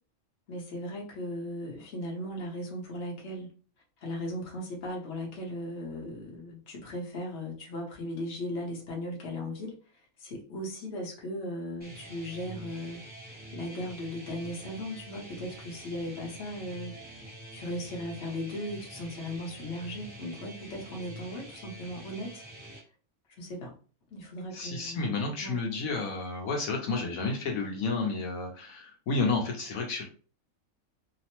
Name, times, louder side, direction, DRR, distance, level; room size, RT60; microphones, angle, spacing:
voice 1, 0.5-3.5 4.0-9.8 10.2-13.0 13.5-16.9 17.5-22.4 23.4-23.8 24.1-25.1 25.4-25.6, left 1 dB, 55° left, -1 dB, 1.0 m, -37 dB
sound 1, 11.8-22.8, right 1 dB, 10° right, 0.9 m, -46 dB
voice 2, 24.5-30.0, left 3 dB, 75° left, 1 dB, 1.1 m, -31 dB
2.9 x 2.0 x 2.9 m, 0.38 s
omnidirectional pair, 1.5 m